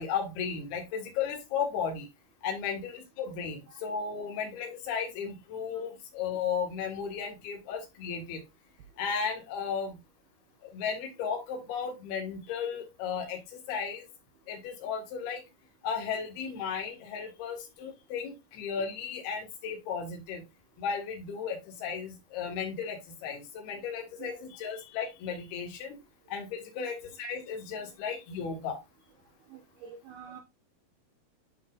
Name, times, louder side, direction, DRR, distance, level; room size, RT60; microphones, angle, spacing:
voice 1, 0.0-2.1 2.4-8.4 9.0-10.0 10.6-14.1 14.5-15.4 15.8-20.4 20.8-26.0 26.3-28.8, left 6 dB, 60° left, 2 dB, 3.4 m, -35 dB
voice 2, 29.5-30.4, right 7 dB, 75° right, 3 dB, 2.3 m, -46 dB
10.5 x 5.5 x 2.5 m, 0.22 s
omnidirectional pair, 5.7 m